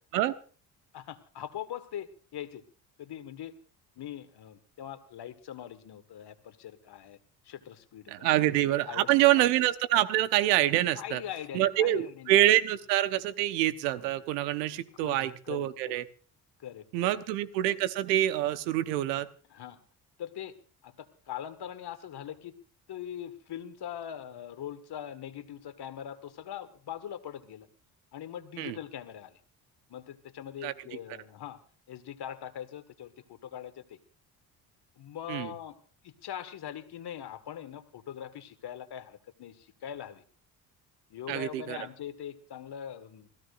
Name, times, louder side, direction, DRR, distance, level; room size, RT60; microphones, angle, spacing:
voice 1, 0.9-2.6 3.0-3.5 4.0-7.2 7.4-8.4 8.9-9.5 10.9-12.4 14.4-14.5 14.9-16.0 16.6-17.2 19.5-19.8 20.2-20.5 20.8-22.5 22.9-27.7 28.1-29.4 29.9-31.6 31.9-34.0 35.0-35.8 36.0-40.2 41.1-43.3, left 10 dB, 55° left, 10 dB, 1.8 m, -42 dB
voice 2, 8.1-11.2 11.5-16.0 16.9-19.3 28.6-28.8 30.6-30.7 35.3-35.5 41.3-41.8, right 14 dB, 85° right, 11 dB, 1.2 m, -26 dB
27.0 x 16.5 x 2.6 m, 0.40 s
hypercardioid pair, 60°, 48 cm